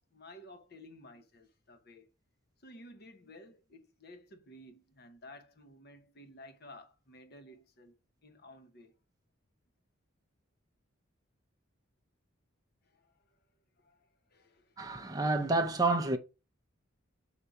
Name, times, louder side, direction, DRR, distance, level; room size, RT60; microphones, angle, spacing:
voice 1, 0.1-2.1 2.6-7.9 8.2-8.9 12.9-13.1 13.8-14.8, left 1 dB, 50° left, 1.0 m, -54 dB
voice 2, 14.8-16.2, right 2 dB, 15° right, 0.6 m, -29 dB
5.5 x 4.0 x 4.7 m
head